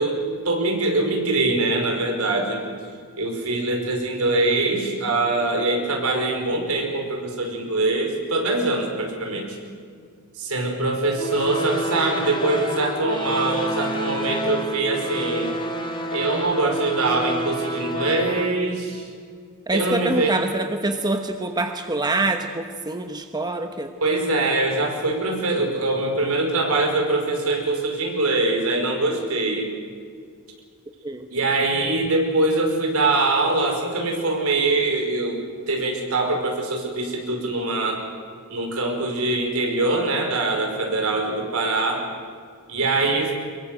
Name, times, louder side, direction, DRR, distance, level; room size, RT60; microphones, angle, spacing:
voice 1, 0.0-2.6 3.2-9.6 10.4-15.5 16.1-19.1 19.7-20.4 24.0-29.7 31.3-35.4 35.7-38.0 38.5-42.1 42.7-43.3, right 2 dB, 75° right, 2 dB, 5.2 m, -23 dB
sound 1, 11.2-18.5, equal, 20° left, 2.4 m, -29 dB
voice 2, 19.7-23.9 31.0-31.3, right 2 dB, 20° right, 6 dB, 1.1 m, -25 dB
24.0 x 22.5 x 7.9 m, 2.1 s
head